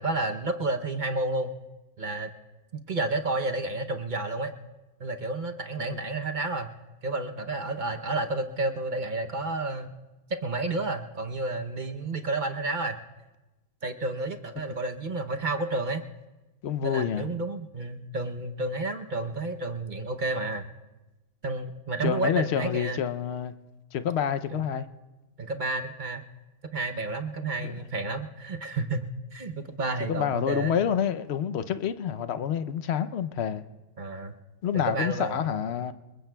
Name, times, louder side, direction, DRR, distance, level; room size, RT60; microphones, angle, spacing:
voice 1, 0.0-1.5 2.0-2.3 2.7-4.5 5.0-6.7 7.0-9.9 10.4-13.0 13.8-16.0 16.8-20.7 21.4-23.0 24.5-24.6 25.4-26.2 26.7-30.8 34.0-34.3 34.7-35.4, right 2 dB, 45° right, 0.7 m, -31 dB
voice 2, 16.6-17.3 22.0-23.5 23.9-24.9 27.6-27.8 30.1-33.7 34.6-35.9, left 8 dB, 60° left, 0.8 m, -28 dB
29.0 x 21.0 x 2.3 m
omnidirectional pair, 1.5 m